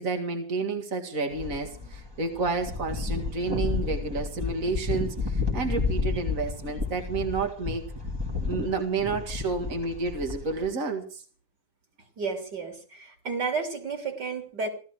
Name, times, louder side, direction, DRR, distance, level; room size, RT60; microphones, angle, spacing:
voice 1, 0.0-7.8 8.5-11.2, right 4 dB, 50° right, 3 dB, 2.6 m, -30 dB
sound 1, 1.3-10.7, left 4 dB, 15° right, 2.9 m, -31 dB
voice 2, 12.2-14.7, right 4 dB, 85° right, 5 dB, 4.1 m, -32 dB
17.0 x 13.5 x 6.3 m, 0.41 s
omnidirectional pair, 1.8 m